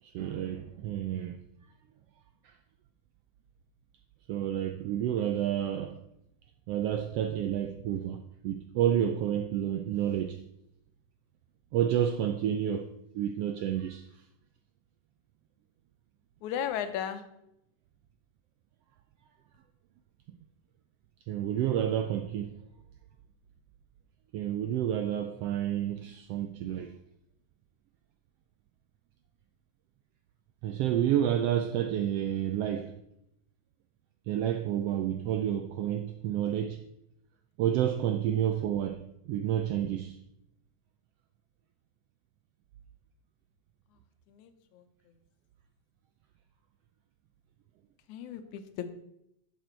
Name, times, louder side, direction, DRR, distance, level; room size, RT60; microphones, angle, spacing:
voice 1, 0.0-1.4 2.4-2.6 4.3-6.0 6.7-10.4 11.7-12.9 13.1-14.2 20.3-20.4 21.3-22.6 24.3-26.9 30.6-33.0 34.3-36.9 37.6-40.2, right 10 dB, 85° right, 1.4 m, -30 dB
voice 2, 16.4-17.2 44.3-44.8 48.1-48.9, left 9 dB, 90° left, 2.3 m, -35 dB
11.0 x 6.7 x 4.4 m
omnidirectional pair, 3.3 m